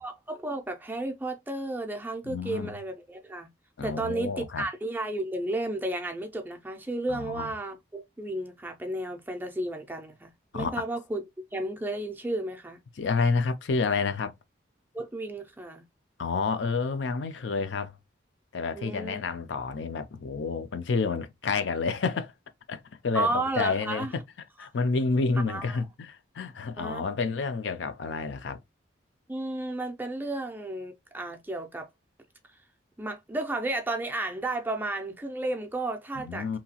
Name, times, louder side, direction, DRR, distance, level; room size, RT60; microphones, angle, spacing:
voice 1, 0.0-3.5 3.8-11.2 11.5-12.8 14.9-15.8 18.7-19.2 23.1-24.1 24.6-24.7 25.5-25.8 26.8-27.1 29.3-31.9 33.0-36.6, right 2 dB, 10° right, 0.4 m, -33 dB
voice 2, 2.2-2.7 3.8-4.6 7.1-7.5 10.5-10.7 13.0-14.3 16.2-17.9 18.5-22.3 22.7-24.2 24.6-28.6 36.2-36.6, left 4 dB, 70° left, 0.5 m, -29 dB
2.8 x 2.2 x 2.8 m
head